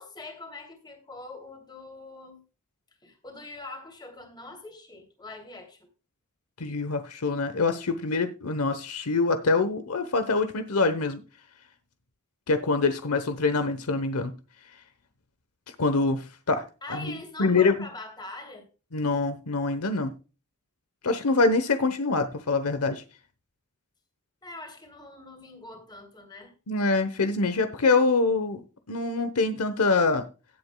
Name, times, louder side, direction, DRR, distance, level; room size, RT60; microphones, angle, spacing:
voice 1, 0.0-2.4 3.0-5.9 16.8-18.7 24.4-26.5, left 2 dB, 20° left, 2.9 m, -43 dB
voice 2, 6.6-11.2 12.5-14.3 15.8-16.6 16.9-17.8 18.9-20.1 21.0-23.0 26.7-28.6 28.9-30.2, left 3 dB, 75° left, 1.0 m, -25 dB
17.0 x 8.1 x 2.3 m
head